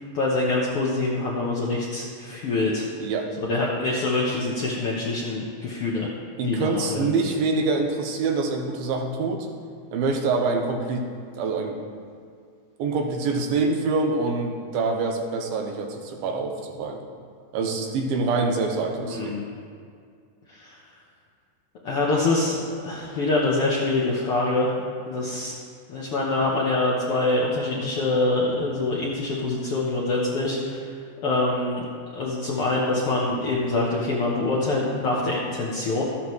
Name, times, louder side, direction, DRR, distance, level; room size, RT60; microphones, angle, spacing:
voice 1, 0.1-2.9 3.4-6.1 6.4-7.1 19.0-19.4 20.5-20.8 21.8-24.7 25.1-25.5 25.9-30.9 31.2-31.9 32.1-36.0, left 2 dB, 90° left, -4 dB, 1.2 m, -25 dB
voice 2, 3.0-3.3 6.4-9.5 9.9-11.1 11.4-11.9 12.8-17.0 17.5-19.3, right 3 dB, 90° right, 3 dB, 2.8 m, -25 dB
13.5 x 11.0 x 3.2 m, 2.2 s
omnidirectional pair, 4.2 m